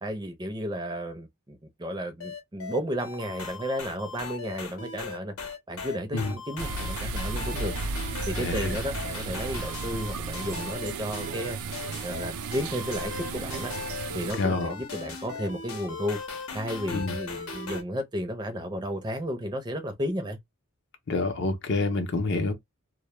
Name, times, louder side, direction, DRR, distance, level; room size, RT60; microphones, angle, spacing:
voice 1, 0.0-5.3 5.7-7.7 8.3-11.6 12.0-13.7 14.1-16.2 16.5-20.4, equal, 20° right, 0.4 m, -33 dB
sound 1, 2.2-17.8, left 4 dB, 85° left, 0.8 m, -38 dB
sound 2, 6.6-14.3, right 4 dB, 90° right, 0.4 m, -34 dB
voice 2, 8.3-8.8 14.4-14.8 16.9-17.1 21.1-22.5, left 3 dB, 55° left, 0.5 m, -27 dB
2.1 x 2.1 x 2.9 m
head